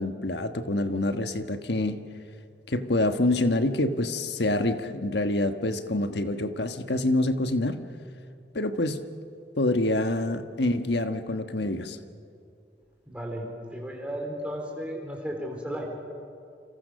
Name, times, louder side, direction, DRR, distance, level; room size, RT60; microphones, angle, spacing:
voice 1, 0.0-2.0 2.7-7.8 8.5-9.0 9.6-12.0, left 2 dB, 70° left, 8 dB, 1.4 m, -26 dB
voice 2, 13.1-15.9, equal, 5° right, 0 dB, 4.4 m, -34 dB
29.5 x 26.5 x 6.5 m, 2.4 s
head